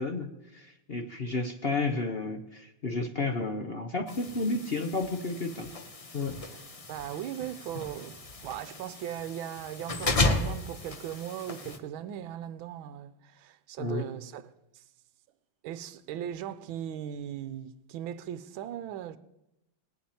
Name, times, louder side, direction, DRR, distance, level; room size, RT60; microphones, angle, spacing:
voice 1, 0.0-5.7 6.1-6.4 13.8-14.1, left 3 dB, 50° left, 0.7 m, -32 dB
sound 1, 4.1-11.8, left 2 dB, 65° left, 0.3 m, -34 dB
voice 2, 6.9-14.4 14.7-14.8 15.6-19.2, right 10 dB, 75° right, 1.5 m, -38 dB
19.0 x 7.3 x 9.0 m
omnidirectional pair, 2.3 m